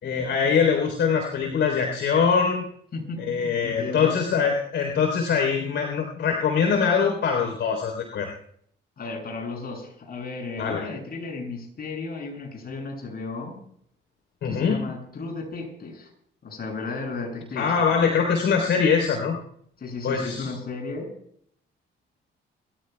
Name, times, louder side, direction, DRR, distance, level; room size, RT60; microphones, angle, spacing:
voice 1, 0.0-2.6 3.2-8.3 10.6-10.9 14.4-14.8 17.6-19.4 20.0-20.5, left 6 dB, 70° left, 2 dB, 3.8 m, -23 dB
voice 2, 2.9-4.2 9.0-13.6 14.4-16.1 16.4-18.1 19.8-21.1, left 3 dB, 50° left, 2 dB, 7.3 m, -34 dB
29.5 x 14.5 x 2.3 m, 0.65 s
cardioid pair, 90°, 20 cm